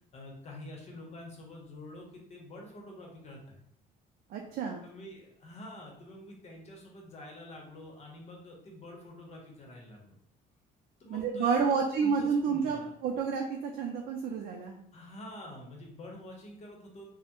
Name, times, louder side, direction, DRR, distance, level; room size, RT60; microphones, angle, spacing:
voice 1, 0.1-3.6 4.8-10.1 11.0-12.9 14.9-17.0, left 1 dB, 40° left, 0 dB, 0.9 m, -47 dB
voice 2, 4.3-4.8 11.1-14.8, right 5 dB, 60° right, 1 dB, 0.4 m, -30 dB
3.2 x 2.0 x 2.9 m, 0.71 s
cardioid pair, 110°, 17 cm